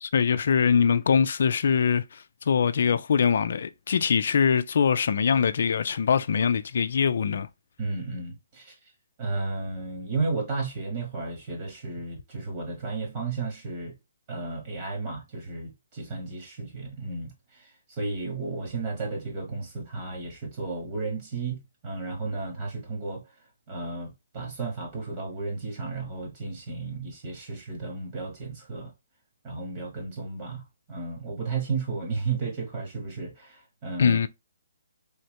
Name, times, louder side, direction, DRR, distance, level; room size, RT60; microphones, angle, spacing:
voice 1, 0.0-7.5 34.0-34.3, left 6 dB, 60° left, 0.4 m, -23 dB
voice 2, 7.8-8.7 9.2-13.9 14.3-23.2 23.7-28.9 29.4-30.6 30.9-34.2, right 3 dB, 35° right, 1.6 m, -33 dB
3.5 x 2.8 x 3.3 m
hypercardioid pair, 150°, 0 cm